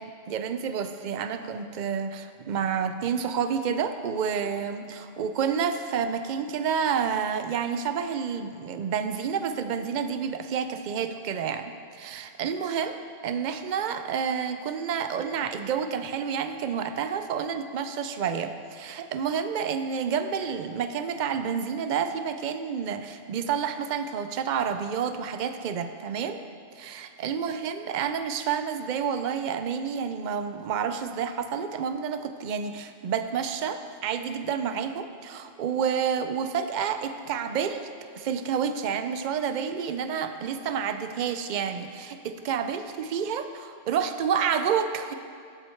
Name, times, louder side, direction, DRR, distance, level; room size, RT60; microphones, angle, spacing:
voice 1, 0.0-12.9 13.2-26.4 26.8-37.9 38.2-45.1, right 7 dB, 60° right, 9 dB, 0.5 m, -29 dB
13.5 x 8.3 x 4.5 m, 2.3 s
omnidirectional pair, 1.4 m